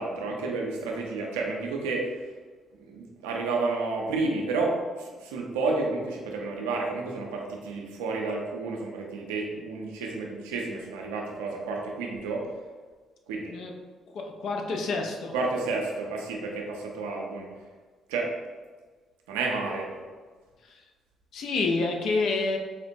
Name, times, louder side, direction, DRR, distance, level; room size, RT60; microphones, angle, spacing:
voice 1, 0.0-2.1 2.9-12.4 13.3-13.6 15.3-17.5 18.1-18.3 19.3-19.9, right 3 dB, 90° right, 0 dB, 0.5 m, -30 dB
voice 2, 14.1-15.3 20.7-20.8 21.3-22.6, left 3 dB, 70° left, 3 dB, 0.5 m, -28 dB
4.4 x 2.1 x 2.6 m, 1.4 s
hypercardioid pair, 55°, 0 cm